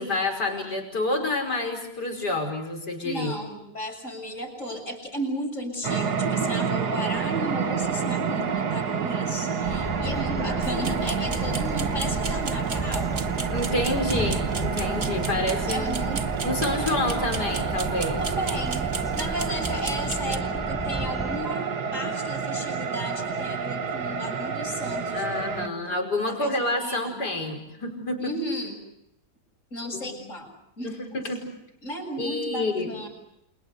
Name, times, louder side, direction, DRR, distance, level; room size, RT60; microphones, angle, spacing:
voice 1, 0.0-3.4 10.4-11.0 13.5-16.1 16.4-18.2 25.1-28.3 29.9-30.2 30.8-31.5 32.2-33.0, left 2 dB, 70° left, 4 dB, 6.0 m, -28 dB
voice 2, 3.0-13.2 15.7-16.2 18.2-26.0 26.2-27.2 28.2-28.8 29.7-30.5 30.8-31.0 31.8-33.1, equal, 45° left, 4 dB, 7.3 m, -34 dB
sound 1, 5.8-25.7, right 6 dB, 70° right, 2.0 m, -29 dB
sound 2, 9.6-21.4, equal, ahead, 4.7 m, -34 dB
sound 3, 10.6-20.4, right 4 dB, 35° right, 1.5 m, -36 dB
30.0 x 28.0 x 6.7 m, 0.81 s
omnidirectional pair, 1.8 m